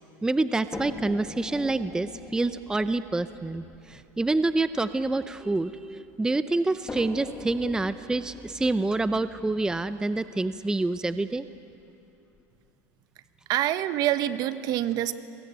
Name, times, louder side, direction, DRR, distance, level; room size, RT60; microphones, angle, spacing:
voice 1, 0.2-11.5, right 2 dB, 10° right, 12 dB, 0.6 m, -27 dB
sound 1, 0.7-5.9 6.9-10.8 11.8-11.9 12.3-12.4, left 3 dB, 15° left, 2.1 m, -43 dB
voice 2, 13.5-15.1, right 13 dB, 50° right, 12 dB, 1.1 m, -26 dB
24.5 x 21.5 x 8.9 m, 2.8 s
supercardioid pair, 115°, 8 cm